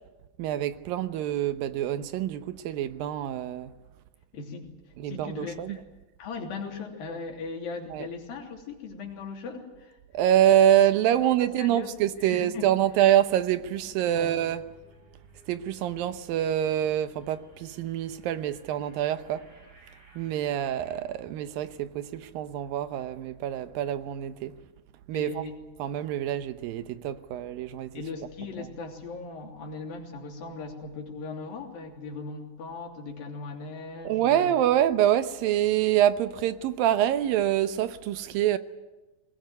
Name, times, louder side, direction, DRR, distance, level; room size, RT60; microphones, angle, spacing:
voice 1, 0.4-3.7 5.0-5.8 7.9-8.1 10.1-14.7 15.5-19.5 20.2-24.6 25.1-25.4 25.8-28.1 28.6-28.7 34.0-38.6, right 11 dB, 85° right, 2.7 m, -26 dB
voice 2, 4.3-4.7 5.0-5.8 6.2-10.0 11.4-11.9 12.3-12.7 14.1-14.4 25.1-25.5 27.9-34.5, left 4 dB, 90° left, 4.9 m, -38 dB
sound 1, 13.5-21.0, equal, 70° right, 8.1 m, -58 dB
22.0 x 20.0 x 9.4 m
omnidirectional pair, 4.0 m